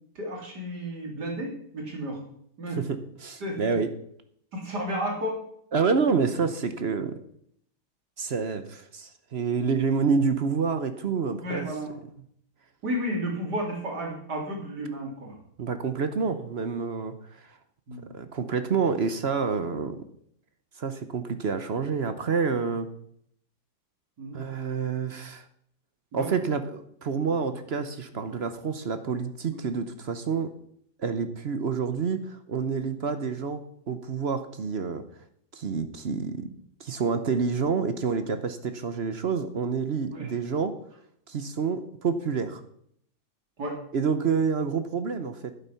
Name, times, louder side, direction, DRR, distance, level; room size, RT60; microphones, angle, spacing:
voice 1, 0.1-2.2 2.6-2.8 3.4-3.7 4.5-5.4 11.4-12.0 12.8-15.3 17.9-18.1 24.2-24.4 26.1-26.3 27.3-27.6 28.1-28.2 29.5-29.6 40.1-40.3 43.6-43.8, equal, 85° right, 3.4 m, -32 dB
voice 2, 2.8-3.9 5.7-7.1 8.2-11.7 15.6-17.6 18.1-20.0 20.8-22.9 24.3-25.5 26.1-30.5 31.0-35.0 35.5-36.5 36.8-40.7 41.3-42.6 43.9-45.5, right 5 dB, 50° right, 0.9 m, -28 dB
11.5 x 8.3 x 5.7 m
omnidirectional pair, 1.7 m